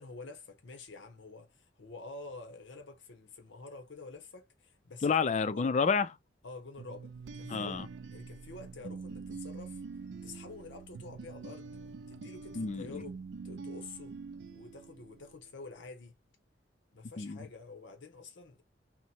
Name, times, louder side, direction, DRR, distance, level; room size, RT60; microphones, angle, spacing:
voice 1, 0.0-5.1 5.5-5.6 6.4-7.1 7.4-7.7 8.1-9.8 10.2-11.7 12.1-14.2 14.5-16.2 16.9-18.6, left 3 dB, 85° left, 0.8 m, -48 dB
voice 2, 5.0-6.1 7.5-7.9 12.6-13.0 17.2-17.4, left 5 dB, 40° left, 0.4 m, -29 dB
sound 1, 6.8-15.5, right 4 dB, 65° right, 0.3 m, -45 dB
2.9 x 2.1 x 4.0 m
head